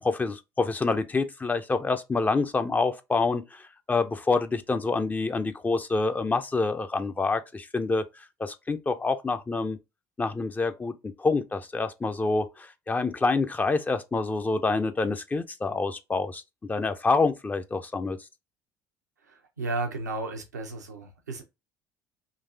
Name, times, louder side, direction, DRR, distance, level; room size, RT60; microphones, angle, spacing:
voice 1, 0.0-9.8 10.2-18.2, left 3 dB, 20° left, 0.5 m, -27 dB
voice 2, 19.3-21.4, right 2 dB, 80° right, 0.8 m, -33 dB
3.9 x 2.7 x 2.7 m
figure-of-eight pair, 60°, 9 cm